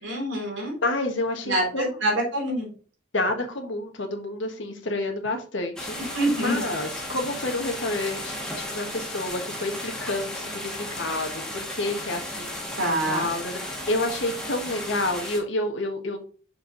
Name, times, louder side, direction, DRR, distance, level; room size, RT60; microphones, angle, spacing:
voice 1, 0.0-0.8 1.5-2.7 6.0-6.6 12.8-13.3, right 1 dB, 70° right, -2 dB, 3.6 m, -26 dB
voice 2, 0.8-1.9 3.1-12.6 13.1-16.2, left 2 dB, 70° left, 4 dB, 1.5 m, -29 dB
sound 1, 5.8-15.4, left 1 dB, 5° left, 1.8 m, -34 dB
6.6 x 4.7 x 4.0 m, 0.41 s
head